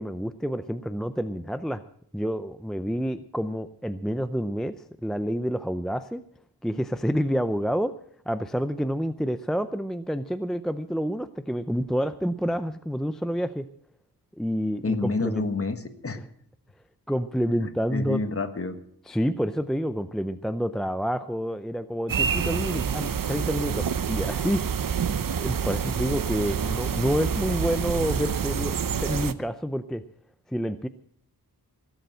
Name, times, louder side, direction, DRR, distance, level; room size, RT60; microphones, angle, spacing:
voice 1, 0.0-1.8 2.1-6.2 6.6-7.9 8.3-13.7 14.4-15.5 17.1-18.3 19.1-24.6 25.4-30.0 30.5-30.9, equal, ahead, 11 dB, 0.5 m, -28 dB
voice 2, 14.8-16.2 17.4-18.7, left 3 dB, 35° left, 8 dB, 1.5 m, -29 dB
sound 1, 22.1-29.3, right 7 dB, 55° right, 0.8 m, -27 dB
17.5 x 8.2 x 7.5 m, 0.65 s
wide cardioid pair, 95°, 39 cm